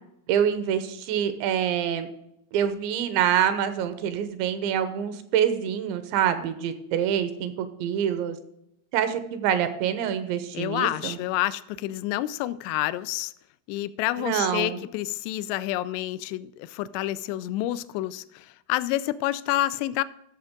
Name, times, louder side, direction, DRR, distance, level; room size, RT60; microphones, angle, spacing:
voice 1, 0.3-2.1 2.5-8.4 8.9-11.2 14.2-14.8, right 9 dB, 80° right, 3.2 m, -26 dB
voice 2, 10.5-13.3 13.7-20.0, left 15 dB, 85° left, 2.5 m, -28 dB
14.0 x 7.0 x 3.7 m
omnidirectional pair, 5.3 m